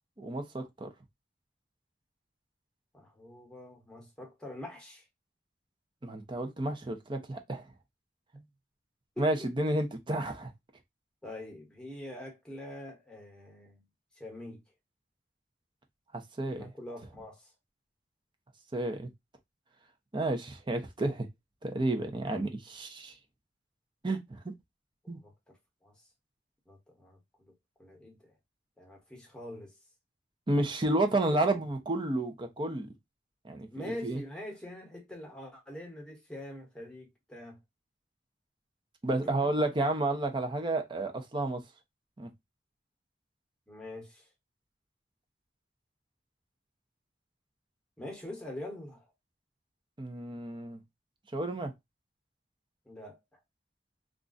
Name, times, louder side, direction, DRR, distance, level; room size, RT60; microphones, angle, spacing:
voice 1, 0.2-0.9 6.0-7.7 9.2-10.5 16.1-16.7 18.7-19.1 20.1-21.3 21.6-23.1 24.0-24.4 25.1-25.2 30.5-32.9 33.4-34.2 39.0-41.6 42.2-42.3 50.0-50.8 51.3-51.7, right 2 dB, 30° right, 0.6 m, -31 dB
voice 2, 2.9-5.0 9.2-9.5 11.2-13.9 14.2-14.6 16.4-17.5 22.2-22.5 25.0-25.6 25.8-25.9 26.7-27.5 27.8-28.3 28.8-29.7 31.3-31.4 33.7-37.6 39.2-39.5 43.7-44.3 48.0-49.1 52.8-53.4, left 1 dB, 5° left, 1.1 m, -44 dB
2.4 x 2.2 x 3.8 m
head